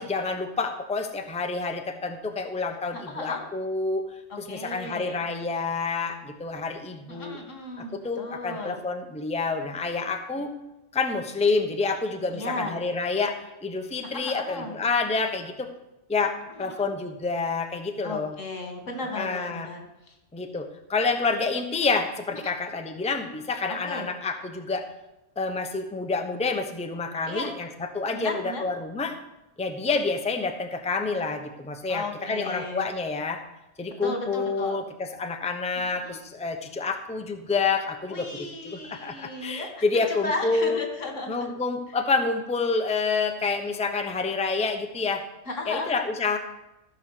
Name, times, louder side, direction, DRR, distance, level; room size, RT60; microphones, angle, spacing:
voice 1, 0.0-4.0 4.4-7.4 7.8-10.5 10.9-15.7 16.1-18.3 19.1-19.7 20.3-24.9 25.4-29.1 29.6-33.4 33.8-38.3 38.7-40.8 41.3-45.2 45.7-46.4, left 4 dB, 5° left, 6 dB, 0.7 m, -28 dB
voice 2, 2.9-3.4 4.3-5.2 7.1-8.8 12.3-12.7 14.1-14.7 16.6-16.9 18.0-19.8 20.1-20.2 22.4-22.5 23.8-24.1 27.2-27.5 28.1-28.6 31.9-32.9 34.0-34.8 36.0-36.2 38.1-39.8 40.2-41.5 45.5-45.9, left 2 dB, 80° left, 3 dB, 2.2 m, -35 dB
14.5 x 5.5 x 6.6 m, 0.94 s
omnidirectional pair, 1.3 m